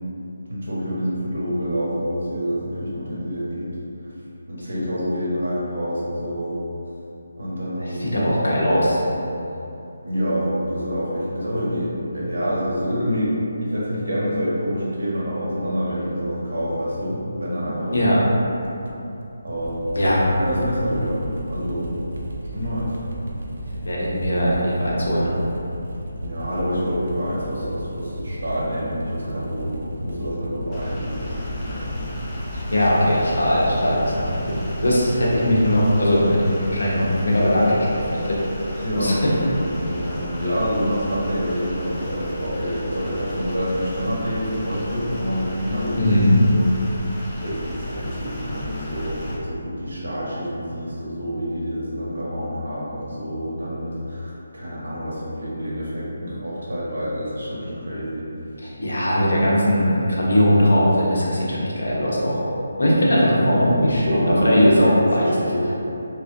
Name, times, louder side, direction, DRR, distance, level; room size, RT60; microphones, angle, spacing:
voice 1, 0.5-3.7 4.5-6.6 7.4-8.8 9.1-9.3 10.0-13.4 13.6-18.0 18.4-18.5 19.4-21.2 21.5-21.9 22.5-22.9 26.2-32.1 38.8-39.2 39.5-46.2 46.5-47.0 47.4-58.3 64.1-64.6 65.2-65.8, equal, 90° right, -7 dB, 1.2 m, -27 dB
voice 2, 7.8-9.0 17.9-18.2 19.9-20.2 23.8-25.3 32.5-39.3 46.0-46.4 58.6-62.4 62.8-65.3, equal, 85° left, -6 dB, 1.0 m, -19 dB
sound 1, 18.6-35.2, right 1 dB, 65° right, 0.5 m, -33 dB
sound 2, 30.7-49.4, left 1 dB, 15° left, 0.5 m, -34 dB
3.5 x 3.1 x 2.6 m, 2.8 s
hypercardioid pair, 170°, 0 cm